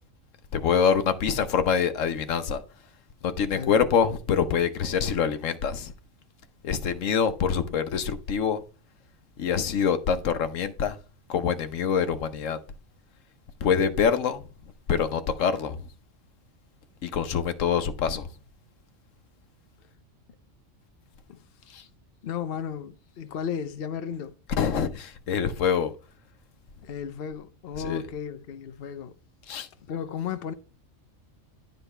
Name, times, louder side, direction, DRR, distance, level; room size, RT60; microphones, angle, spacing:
voice 1, 0.5-2.6 3.2-5.9 6.6-8.6 9.4-11.0 11.3-12.6 13.6-14.5 14.9-15.8 17.0-18.3 21.7-21.9 24.5-25.9 27.8-28.0 29.5-29.7, left 7 dB, 80° left, 1.2 m, -25 dB
voice 2, 22.2-24.3 26.8-29.1 29.8-30.5, left 7 dB, 55° left, 0.8 m, -34 dB
9.9 x 4.0 x 5.4 m
omnidirectional pair, 1.3 m